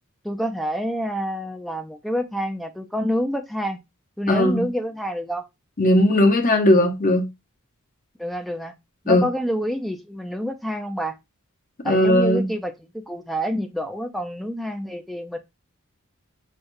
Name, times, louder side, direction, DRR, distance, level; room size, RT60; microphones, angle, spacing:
voice 1, 0.2-3.8 4.2-5.4 8.2-8.7 9.0-11.2 11.8-15.4, equal, ahead, 0.5 m, -27 dB
voice 2, 4.3-4.7 5.8-7.3 9.1-9.3 11.8-12.5, left 1 dB, 40° left, 0.8 m, -18 dB
6.3 x 2.2 x 2.6 m
head